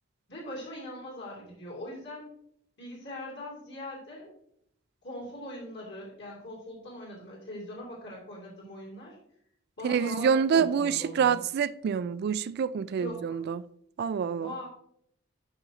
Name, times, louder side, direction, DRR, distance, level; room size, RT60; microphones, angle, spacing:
voice 1, 0.3-2.3 2.8-4.3 5.0-9.2 9.8-11.4 12.9-13.4 14.4-14.7, left 1 dB, 65° left, 2.7 m, -41 dB
voice 2, 9.8-13.6 14.0-14.5, right 7 dB, 55° right, 0.3 m, -27 dB
9.5 x 5.8 x 2.8 m
head